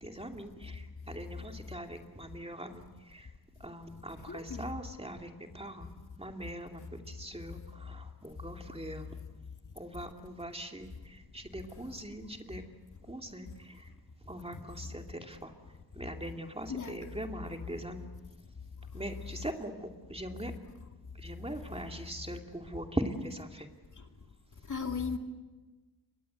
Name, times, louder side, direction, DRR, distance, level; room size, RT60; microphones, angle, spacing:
voice 1, 0.0-2.8 3.1-3.3 3.6-9.1 9.8-12.6 13.1-13.9 14.3-15.5 15.9-18.1 18.9-20.5 21.2-23.7, right 1 dB, 15° right, 2.5 m, -41 dB
voice 2, 4.3-4.6 14.5-14.6 16.7-17.2 24.7-25.2, left 5 dB, 45° left, 2.5 m, -36 dB
28.5 x 23.5 x 8.0 m
wide cardioid pair, 100°, 42 cm